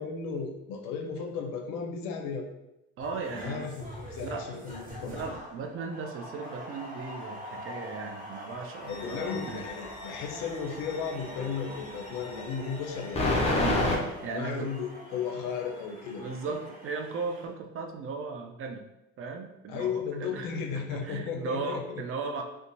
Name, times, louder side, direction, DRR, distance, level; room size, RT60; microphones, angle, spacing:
voice 1, 0.0-2.5 3.4-5.2 8.8-13.7 14.0-16.5 19.7-21.8, left 6 dB, 70° left, 2 dB, 0.5 m, -35 dB
sound 1, 3.0-17.5, left 1 dB, 25° right, 1.1 m, -44 dB
voice 2, 3.0-3.7 4.2-4.5 5.0-9.6 13.5-14.7 16.2-18.8 19.2-20.5 20.9-22.4, right 4 dB, 40° right, 4 dB, 0.4 m, -37 dB
sound 2, 8.9-11.3 12.1-14.0, left 2 dB, 20° left, 0.5 m, -29 dB
2.8 x 2.2 x 2.6 m, 0.92 s
supercardioid pair, 100°, 34 cm